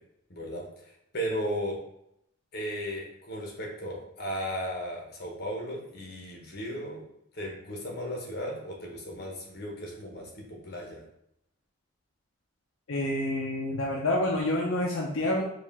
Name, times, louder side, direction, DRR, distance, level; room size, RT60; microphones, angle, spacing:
voice 1, 0.3-0.7 1.1-1.8 2.5-7.0 7.3-11.0, equal, 50° left, 0 dB, 1.0 m, -35 dB
voice 2, 12.9-15.4, left 1 dB, 75° left, -1 dB, 0.5 m, -28 dB
4.5 x 2.4 x 3.5 m, 0.77 s
head